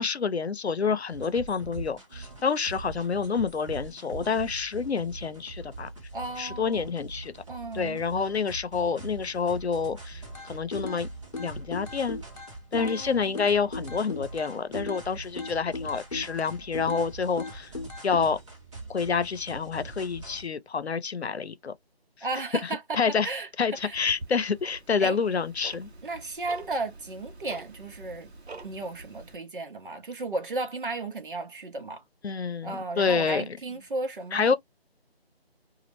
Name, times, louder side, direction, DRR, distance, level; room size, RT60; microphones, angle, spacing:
voice 1, 0.0-5.9 6.4-7.3 7.7-11.1 11.4-12.2 12.7-17.7 18.0-18.4 18.9-21.7 22.9-23.3 23.6-25.9 32.2-33.4 34.3-34.6, left 5 dB, 90° left, 0.7 m, -28 dB
sound 1, 1.1-20.5, right 3 dB, 30° right, 1.1 m, -43 dB
voice 2, 6.1-6.9 7.5-8.0 12.7-13.4 22.2-24.0 25.0-25.2 26.0-28.3 28.6-32.0 32.6-34.6, right 3 dB, 55° right, 0.8 m, -34 dB
sound 2, 10.3-11.0 11.3-13.0 13.3-15.1 15.4-17.1 17.4-18.3, left 3 dB, 40° left, 0.8 m, -37 dB
Tick-tock, 23.8-29.3, right 3 dB, 85° right, 0.8 m, -46 dB
2.3 x 2.1 x 2.9 m
figure-of-eight pair, 165°, 32 cm